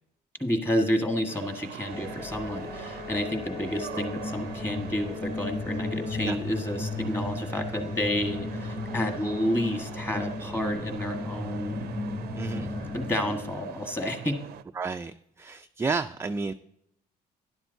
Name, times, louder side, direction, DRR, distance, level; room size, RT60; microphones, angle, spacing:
voice 1, 0.4-11.9 12.9-14.4, left 1 dB, 15° left, 5 dB, 1.5 m, -30 dB
sound 1, 1.3-14.6, right 12 dB, 70° right, 0.5 m, -43 dB
sound 2, 1.9-14.1, left 3 dB, 40° left, 2.8 m, -35 dB
voice 2, 12.4-12.7 14.8-16.5, right 4 dB, 15° right, 7 dB, 0.3 m, -31 dB
11.5 x 11.0 x 2.6 m, 0.75 s
cardioid pair, 110°, 17 cm